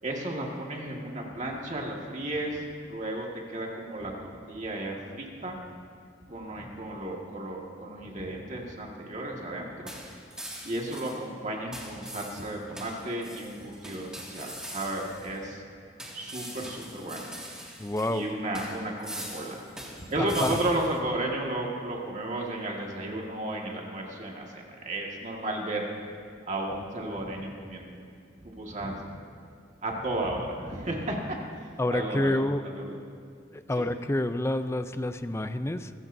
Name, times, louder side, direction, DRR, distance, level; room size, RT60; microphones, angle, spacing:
voice 1, 0.0-4.1 4.5-5.6 6.2-9.9 10.6-15.6 16.1-17.4 18.1-19.6 20.1-25.9 26.5-28.0 28.4-29.0 29.8-31.4 31.9-33.0 33.8-33.9, right 1 dB, 40° right, -1 dB, 1.8 m, -33 dB
sound 1, 9.9-11.3 11.7-15.4 16.0-18.2 18.5-21.0, equal, 5° right, 2.1 m, -43 dB
voice 2, 17.8-18.3 20.2-20.6 31.8-32.6 33.5-35.9, left 1 dB, 15° left, 10 dB, 0.5 m, -28 dB
26.0 x 15.0 x 2.7 m, 2.3 s
head